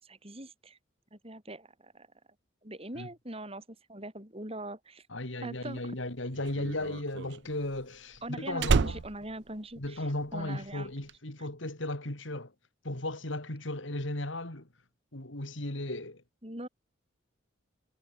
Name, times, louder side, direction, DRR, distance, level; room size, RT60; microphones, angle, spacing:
voice 1, 0.0-0.8 1.1-2.1 2.6-3.6 3.9-5.1 5.4-6.0 8.2-10.9 16.4-16.7, right 1 dB, 30° right, 8.0 m, -42 dB
voice 2, 5.1-9.0 9.8-12.5 12.8-14.7 15.1-16.2, left 1 dB, 75° left, 3.5 m, -36 dB
Slam, 5.6-10.4 10.7-11.1, right 5 dB, 60° right, 0.5 m, -31 dB
head